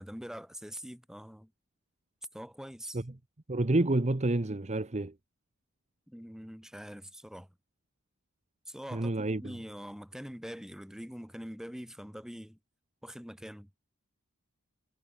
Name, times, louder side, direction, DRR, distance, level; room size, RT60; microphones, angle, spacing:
voice 1, 0.0-1.5 2.3-3.0 6.1-7.5 8.7-12.6 13.0-13.7, equal, ahead, 5.1 m, -44 dB
voice 2, 3.5-5.1 8.9-9.5, right 2 dB, 30° right, 1.0 m, -28 dB
head